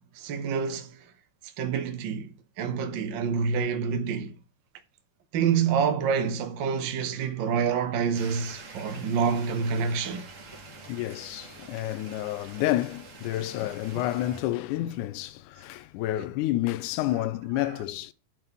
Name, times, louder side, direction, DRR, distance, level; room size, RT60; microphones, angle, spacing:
voice 1, 0.1-1.0 1.6-4.4 5.3-10.3, right 6 dB, 80° right, 1.0 m, -27 dB
sound 1, 8.1-14.4, right 4 dB, 60° right, 0.7 m, -46 dB
voice 2, 10.9-18.1, left 15 dB, 85° left, 2.1 m, -30 dB
10.0 x 3.8 x 6.9 m
omnidirectional pair, 3.6 m